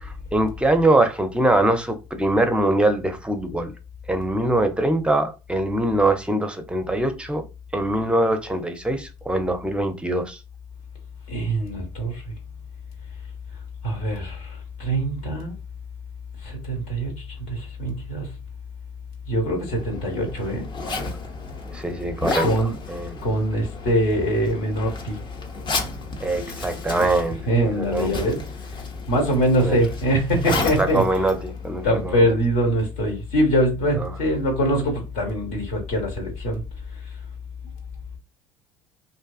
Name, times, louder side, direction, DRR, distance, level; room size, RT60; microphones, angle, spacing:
voice 1, 0.0-3.7 4.1-7.4 7.7-10.4 21.7-23.2 26.2-28.2 29.6-29.8 30.5-32.3 34.0-34.1, right 1 dB, 5° right, 0.5 m, -23 dB
voice 2, 11.3-12.2 13.8-15.5 16.4-17.1 17.5-18.3 19.3-20.6 22.4-22.7 23.2-25.2 27.5-28.4 29.1-31.2 31.8-36.6, equal, 65° left, 1.3 m, -23 dB
Zipper (clothing), 19.5-32.2, left 2 dB, 30° left, 0.8 m, -33 dB
2.7 x 2.3 x 2.4 m
figure-of-eight pair, 60°, 15 cm